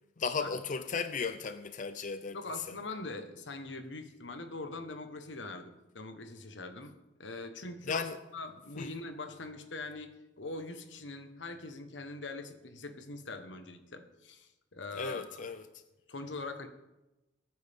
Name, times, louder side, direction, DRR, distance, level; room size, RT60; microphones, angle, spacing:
voice 1, 0.2-2.4 2.7-2.8 7.8-8.2 8.8-8.9 14.9-15.8, left 5 dB, 45° left, 0.5 m, -35 dB
voice 2, 2.3-6.9 7.2-15.4 16.1-16.7, left 2 dB, 90° left, 1.3 m, -42 dB
22.0 x 9.4 x 3.6 m
head